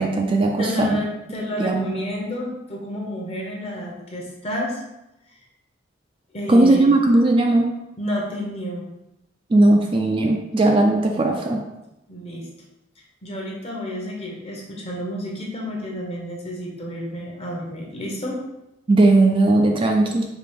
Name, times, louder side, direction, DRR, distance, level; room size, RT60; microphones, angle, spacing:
voice 1, 0.0-1.0 1.6-1.9 6.5-7.7 9.5-11.6 18.9-20.3, right 2 dB, 30° right, 2 dB, 0.3 m, -17 dB
voice 2, 0.6-4.8 6.3-6.9 8.0-8.9 10.9-11.2 12.1-12.5 13.2-18.4, equal, 35° left, -2 dB, 0.9 m, -30 dB
4.9 x 2.4 x 3.4 m, 0.92 s
head